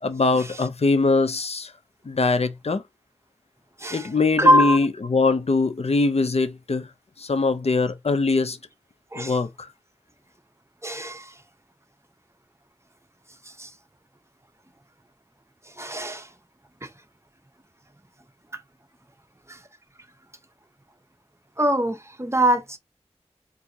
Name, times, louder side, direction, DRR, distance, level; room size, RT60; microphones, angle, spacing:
voice 1, 0.0-1.7 2.1-2.8 3.9-6.9 7.2-8.6 9.2-9.7, left 3 dB, 65° left, 0.5 m, -22 dB
voice 2, 3.8-4.1 4.4-4.8 9.1-9.4 10.8-11.3 13.6-13.7 15.8-16.3 19.5-19.6 21.6-22.8, equal, 25° right, 0.7 m, -22 dB
4.5 x 2.6 x 2.7 m
wide cardioid pair, 55°, 11 cm